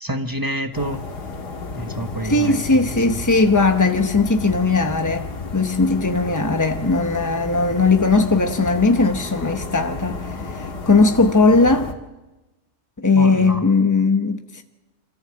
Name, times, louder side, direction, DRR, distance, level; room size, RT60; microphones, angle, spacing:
voice 1, 0.0-1.0 1.7-2.6 13.2-13.6, right 1 dB, 15° right, 0.9 m, -27 dB
sound 1, 0.7-11.9, left 3 dB, 80° left, 2.4 m, -32 dB
voice 2, 2.2-11.9 13.0-14.6, left 3 dB, 20° left, 0.4 m, -18 dB
26.0 x 14.0 x 7.6 m
omnidirectional pair, 1.7 m